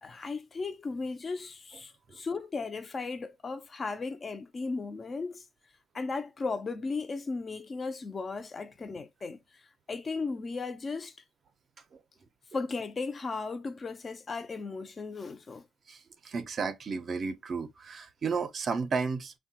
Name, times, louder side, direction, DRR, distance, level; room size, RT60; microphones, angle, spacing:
voice 1, 0.0-5.4 5.9-9.4 9.9-11.1 12.5-15.7, left 4 dB, 25° left, 0.4 m, -36 dB
voice 2, 16.2-19.3, right 5 dB, 35° right, 0.5 m, -32 dB
3.3 x 2.1 x 2.7 m
cardioid pair, 150°, 0 cm